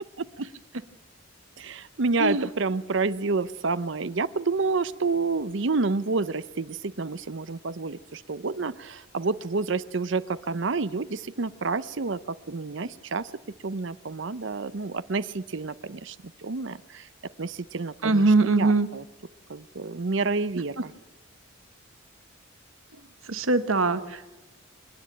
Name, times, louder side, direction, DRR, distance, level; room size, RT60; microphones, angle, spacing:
voice 1, 0.2-0.5 1.6-13.3 13.6-17.1 17.4-19.0 19.5-20.9, right 4 dB, 60° right, 14 dB, 0.6 m, -29 dB
voice 2, 18.0-18.9 23.3-24.3, right 3 dB, 80° right, 11 dB, 1.4 m, -22 dB
27.5 x 10.5 x 8.8 m, 1.2 s
head